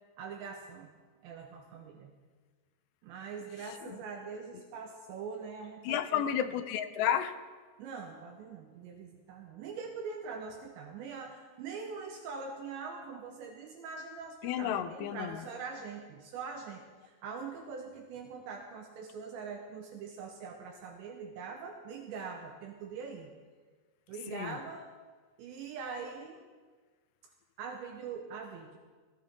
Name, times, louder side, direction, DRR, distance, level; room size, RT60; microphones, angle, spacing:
voice 1, 0.2-0.9 1.2-2.1 3.0-6.3 7.8-23.3 24.1-24.9 25.4-26.4 27.6-28.8, right 5 dB, 75° right, 2 dB, 3.1 m, -43 dB
voice 2, 5.8-7.3 14.4-15.3 24.3-24.6, left 10 dB, 80° left, 10 dB, 2.5 m, -31 dB
18.5 x 16.0 x 3.7 m, 1.4 s
omnidirectional pair, 5.5 m